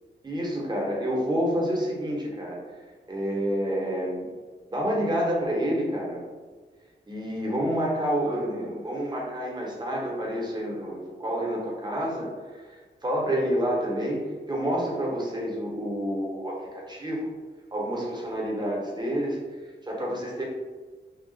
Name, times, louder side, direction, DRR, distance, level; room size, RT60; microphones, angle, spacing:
voice 1, 0.2-2.6 3.1-4.3 4.7-6.2 7.1-17.3 17.7-19.4 19.8-20.4, equal, 25° right, -3 dB, 0.8 m, -28 dB
3.2 x 2.3 x 3.8 m, 1.4 s
wide cardioid pair, 150°, 19 cm